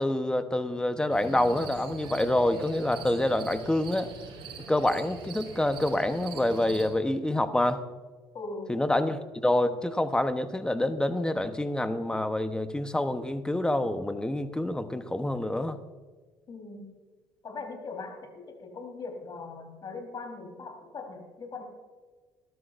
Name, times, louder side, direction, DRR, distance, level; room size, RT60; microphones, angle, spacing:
voice 1, 0.0-4.1 4.7-7.8 8.7-15.8, left 1 dB, 10° left, 9 dB, 1.0 m, -27 dB
sound 1, 1.1-6.9, right 5 dB, 55° right, 4.6 m, -43 dB
voice 2, 8.3-8.7 16.5-16.9 17.4-21.6, left 3 dB, 45° left, 2 dB, 4.0 m, -40 dB
21.5 x 12.5 x 2.6 m, 1.4 s
cardioid pair, 105°, 10 cm